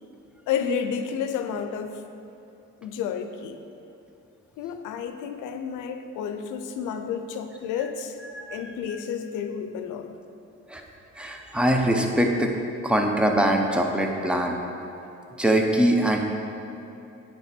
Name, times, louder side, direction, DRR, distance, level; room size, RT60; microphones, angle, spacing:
voice 1, 0.5-2.0 2.8-3.6 4.6-8.2 8.5-10.2, left 7 dB, 90° left, 8 dB, 0.5 m, -31 dB
voice 2, 8.3-9.0 10.7-10.8 11.1-14.6 15.4-16.2, right 1 dB, 5° right, 2 dB, 0.7 m, -23 dB
8.7 x 3.4 x 4.3 m, 2.9 s
cardioid pair, 90°, 30 cm